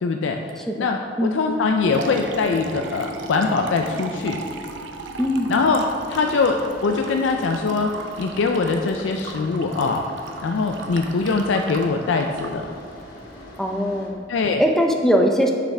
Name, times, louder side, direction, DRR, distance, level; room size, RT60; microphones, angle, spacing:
voice 1, 0.0-0.4 0.8-4.4 5.5-5.8 6.1-7.9 8.2-10.0 10.4-12.7 14.3-14.6, left 4 dB, 90° left, 3 dB, 0.4 m, -22 dB
voice 2, 0.6-1.4 5.2-5.5 13.6-14.2 14.6-15.5, equal, ahead, 2 dB, 0.4 m, -21 dB
Liquid, 1.6-13.5, right 2 dB, 85° right, 0.6 m, -36 dB
sound 1, 5.9-14.1, left 1 dB, 55° left, 1.3 m, -42 dB
7.3 x 5.6 x 3.3 m, 2.2 s
head